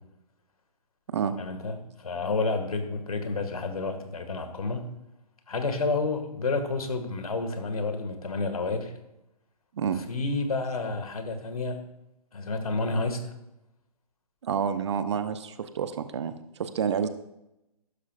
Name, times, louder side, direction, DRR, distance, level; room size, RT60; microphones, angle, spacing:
voice 1, 1.4-4.9 5.5-8.9 10.1-11.8 12.3-13.3, left 3 dB, 65° left, 7 dB, 2.0 m, -30 dB
voice 2, 14.4-17.1, right 7 dB, 45° right, 10 dB, 0.9 m, -29 dB
14.5 x 12.0 x 2.5 m, 0.88 s
figure-of-eight pair, 135°, 20 cm